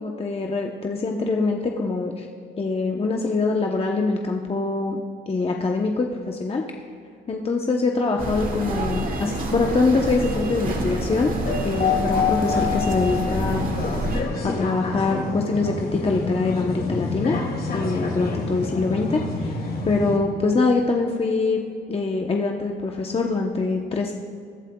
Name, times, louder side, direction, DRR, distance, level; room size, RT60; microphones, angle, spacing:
voice 1, 0.0-2.3 2.6-5.0 5.3-6.6 7.3-11.3 11.6-13.7 14.4-17.4 17.7-19.6 19.8-21.6 21.9-24.1, left 3 dB, 30° left, 1 dB, 0.9 m, -24 dB
sound 1, 8.2-14.2, right 1 dB, 45° right, 1.9 m, -28 dB
sound 2, 11.2-20.2, left 4 dB, 50° left, 2.5 m, -27 dB
20.5 x 11.5 x 2.3 m, 2.2 s
cardioid pair, 90°, 20 cm